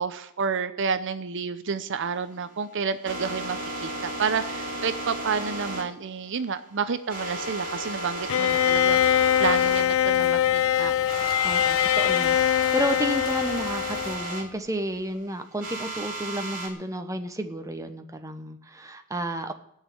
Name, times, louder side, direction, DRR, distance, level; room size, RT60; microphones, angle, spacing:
voice 1, 0.0-9.0 9.4-10.9, right 5 dB, 55° right, 12 dB, 0.6 m, -30 dB
sound 1, 1.9-9.9 10.2-10.3 10.6-10.8 11.0-14.5 15.6-16.7, right 1 dB, 40° right, 3.0 m, -34 dB
Bowed string instrument, 8.3-14.4, left 10 dB, 65° left, 0.4 m, -23 dB
sound 2, 8.5-14.2, left 3 dB, 45° left, 1.6 m, -43 dB
voice 2, 11.4-19.5, right 1 dB, 15° right, 6 dB, 1.0 m, -31 dB
16.5 x 6.4 x 9.2 m, 0.78 s
head